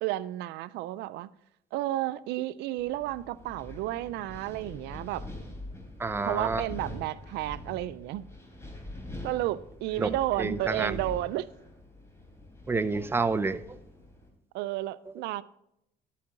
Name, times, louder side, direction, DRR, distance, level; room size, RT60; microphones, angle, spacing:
voice 1, 0.0-1.3 1.7-5.3 6.2-8.2 9.2-11.5 14.5-15.4, right 15 dB, 85° right, 0.4 m, -32 dB
Wind, 2.8-14.3, left 1 dB, 15° left, 3.4 m, -44 dB
voice 2, 6.0-6.6 10.0-10.1 10.4-11.0 12.7-13.8, right 3 dB, 15° right, 0.6 m, -28 dB
11.5 x 8.5 x 3.8 m
cardioid pair, 110°, 17 cm